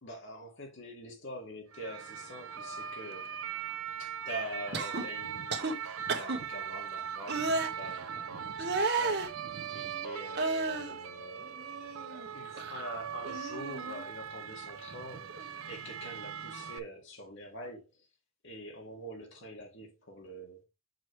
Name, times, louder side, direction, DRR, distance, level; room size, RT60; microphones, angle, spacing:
voice 1, 0.0-3.4 4.0-18.1 18.4-20.6, equal, 60° left, 1.9 m, -45 dB
sound 1, 1.7-16.8, right 8 dB, 70° right, 0.5 m, -40 dB
sound 2, 4.7-5.0 5.5-5.7 6.1-6.4 7.3-7.7 8.6-9.3 10.3-10.9 11.4-12.3 12.5-12.8 13.2-14.0 15.3-15.5, right 3 dB, 50° right, 1.2 m, -33 dB
6.2 x 6.1 x 3.1 m
head